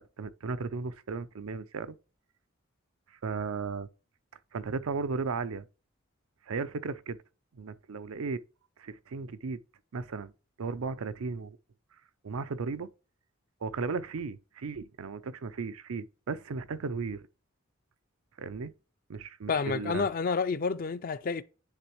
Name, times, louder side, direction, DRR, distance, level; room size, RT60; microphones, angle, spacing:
voice 1, 0.0-2.0 3.2-3.9 4.5-5.6 6.5-7.2 7.5-8.4 8.8-9.6 9.9-10.3 10.6-11.6 12.2-12.9 13.6-17.3 18.4-18.7 19.1-20.1, right 4 dB, 85° right, 0.5 m, -35 dB
voice 2, 19.5-21.4, left 5 dB, 45° left, 0.4 m, -29 dB
9.9 x 3.5 x 3.0 m
head